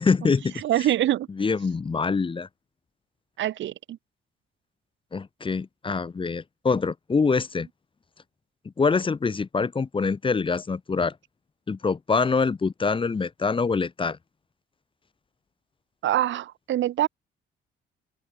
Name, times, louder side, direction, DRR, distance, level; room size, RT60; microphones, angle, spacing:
voice 1, 0.0-0.6 1.4-2.5 5.1-7.7 8.8-11.1 11.7-14.2, left 4 dB, 25° left, 0.9 m, -25 dB
voice 2, 0.6-1.3 3.4-4.0 16.0-17.1, right 13 dB, 70° right, 0.9 m, -24 dB
open air
cardioid pair, 90°, 20 cm